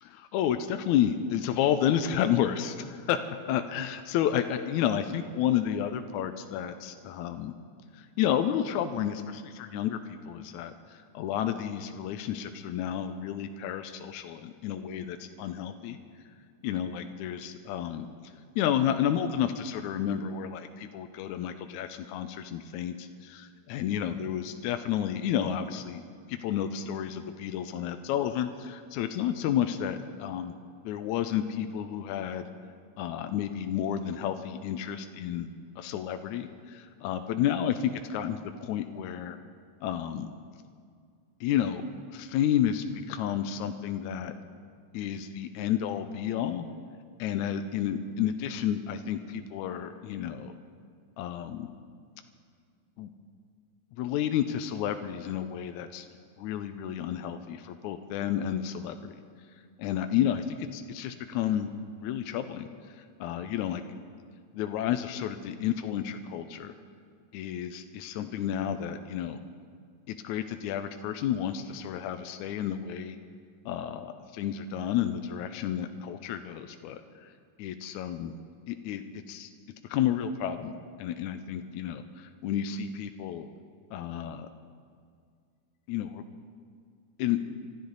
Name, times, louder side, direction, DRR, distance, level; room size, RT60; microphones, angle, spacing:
voice 1, 0.0-3.2 3.5-7.5 7.9-16.0 16.6-18.1 18.6-26.0 26.3-30.5 30.9-32.5 33.0-35.5 35.8-39.4 39.8-40.3 41.4-41.8 42.1-44.3 44.9-46.7 47.2-50.5 51.2-51.7 53.0-53.1 54.0-56.1 56.4-59.1 59.8-60.4 60.7-61.7 62.0-62.7 62.9-63.8 64.5-66.7 67.3-69.4 70.1-73.2 73.7-77.3 77.6-78.3 78.7-79.5 79.9-80.7 81.0-83.5 83.9-84.5 85.9-86.2 87.2-87.4, left 10 dB, 85° left, 7 dB, 2.0 m, -31 dB
24.5 x 13.0 x 4.0 m, 2.2 s
omnidirectional pair, 3.4 m